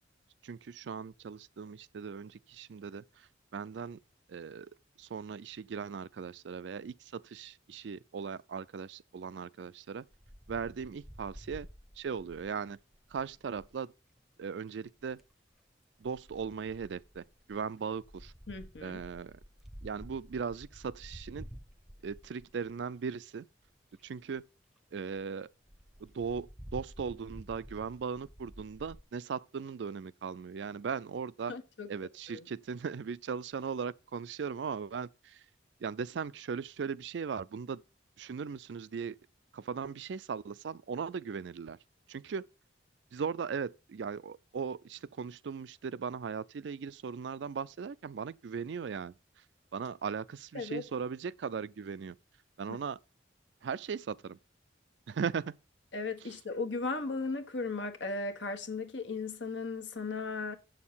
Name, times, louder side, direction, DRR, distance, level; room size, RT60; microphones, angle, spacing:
voice 1, 0.4-4.0 4.3-4.7 5.0-10.1 10.5-11.7 12.0-12.8 13.1-13.9 14.4-15.2 16.0-18.3 18.8-19.4 19.8-21.5 22.0-23.5 24.0-24.4 24.9-25.5 26.0-31.5 31.9-35.4 35.8-37.8 38.2-39.2 39.5-41.8 42.1-42.5 43.1-49.4 49.7-52.2 52.6-53.0 53.6-54.4 55.1-55.6, right 6 dB, 70° right, 0.4 m, -38 dB
Wind, 10.1-13.8 14.9-15.3 16.0-23.0 23.6-23.7 23.9-24.0 24.4-24.5 24.8-24.9 25.1-25.2 25.7-29.0, equal, ahead, 0.7 m, -51 dB
voice 2, 18.5-19.0 31.5-31.9 32.3-32.5 50.5-50.8 52.7-52.8 55.9-60.6, left 3 dB, 75° left, 1.3 m, -36 dB
7.7 x 6.4 x 5.6 m
head